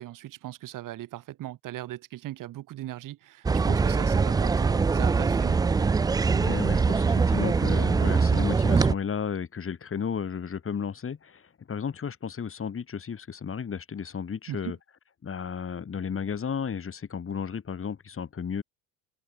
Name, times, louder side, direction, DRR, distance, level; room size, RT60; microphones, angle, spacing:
voice 1, 0.0-5.6 14.5-14.7, right 14 dB, 40° right, 2.2 m, -39 dB
sound 1, 3.4-8.9, right 4 dB, 10° right, 0.5 m, -23 dB
voice 2, 6.3-14.8 15.2-18.6, left 6 dB, 25° left, 6.3 m, -33 dB
open air
figure-of-eight pair, 70°, 47 cm